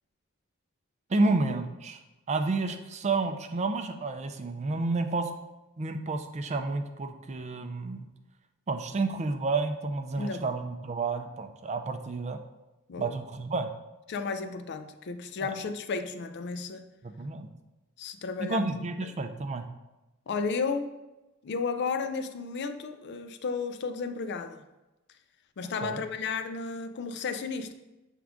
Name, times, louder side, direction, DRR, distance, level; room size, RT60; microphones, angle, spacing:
voice 1, 1.1-2.0 2.3-5.3 5.8-8.1 8.7-12.4 13.0-13.7 15.4-15.5 17.0-17.5 18.4-19.7 25.8-26.0, right 3 dB, 30° right, 7 dB, 0.4 m, -30 dB
voice 2, 10.2-10.5 12.9-13.1 14.1-16.9 18.0-18.7 20.3-20.9 21.4-24.6 25.6-27.7, left 4 dB, 55° left, 9 dB, 0.4 m, -33 dB
7.3 x 3.6 x 3.6 m, 1.0 s
head